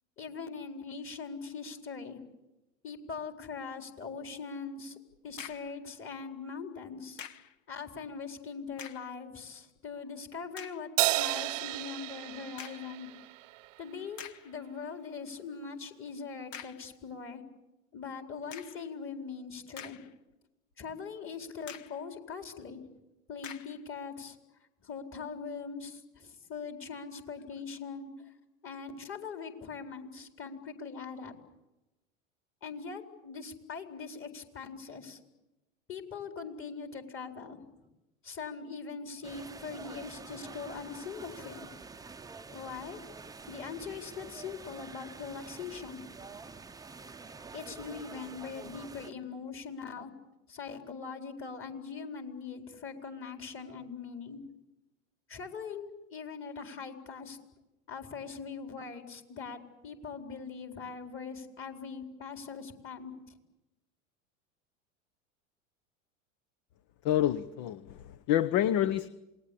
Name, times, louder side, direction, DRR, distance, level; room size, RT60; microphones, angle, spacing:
voice 1, 0.2-2.2 2.8-5.0 5.2-7.4 7.7-13.1 13.8-17.4 17.9-20.0 20.8-22.8 23.3-24.4 24.8-28.3 28.6-31.3 32.6-35.2 35.9-37.6 38.2-41.7 42.5-43.0 43.5-46.0 47.5-50.1 50.5-54.4 55.3-57.4 57.9-63.1, left 5 dB, 30° left, 4 dB, 4.3 m, -41 dB
sound 1, 5.1-5.8 7.2-7.6 8.7-9.2 9.8-9.9 10.5-10.9 12.6-13.0 13.6-13.7 14.2-14.6 16.5-16.9 18.5-18.9 19.5-20.3 20.7-20.8 21.7-22.0 23.4-23.8, left 9 dB, 70° left, 1.5 m, -46 dB
Crash cymbal, 11.0-13.7, right 16 dB, 70° right, 0.9 m, -32 dB
sound 2, 39.2-49.1, right 4 dB, 10° right, 0.8 m, -47 dB
voice 2, 67.0-69.1, left 11 dB, 50° left, 16 dB, 1.0 m, -28 dB
28.0 x 20.0 x 8.5 m, 1.0 s
hypercardioid pair, 90°, 39 cm